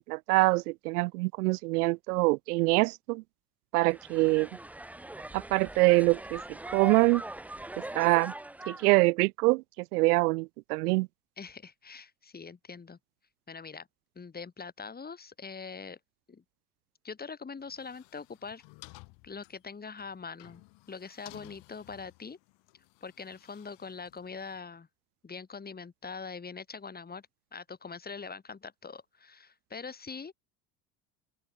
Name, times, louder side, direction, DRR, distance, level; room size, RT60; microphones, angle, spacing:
voice 1, 0.0-3.2 3.7-4.5 5.3-6.4 6.7-7.2 7.8-8.3 8.7-9.6 9.9-11.1, right 23 dB, 85° right, 0.6 m, -25 dB
sound 1, 3.9-8.9, right 1 dB, 5° right, 0.5 m, -41 dB
voice 2, 11.4-13.0 13.5-13.9 14.1-16.0 16.3-16.4 17.0-18.6 19.2-20.6 20.9-22.4 23.0-24.9 25.2-30.3, left 5 dB, 20° left, 1.5 m, -43 dB
sound 2, 17.6-24.6, left 26 dB, 70° left, 6.1 m, -55 dB
open air
hypercardioid pair, 75°, 44 cm